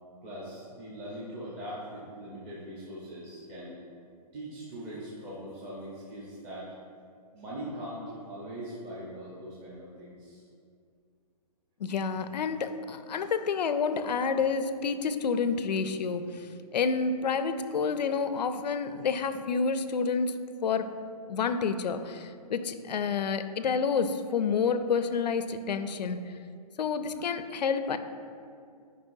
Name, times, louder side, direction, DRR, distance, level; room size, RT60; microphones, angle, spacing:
voice 1, 0.2-3.7 4.3-6.7 7.3-10.4, equal, 20° right, -9 dB, 1.0 m, -41 dB
voice 2, 11.8-20.3 20.6-20.9 21.3-26.2 26.8-28.0, left 5 dB, 90° left, 10 dB, 0.5 m, -29 dB
9.4 x 5.1 x 2.7 m, 2.3 s
hypercardioid pair, 160°, 21 cm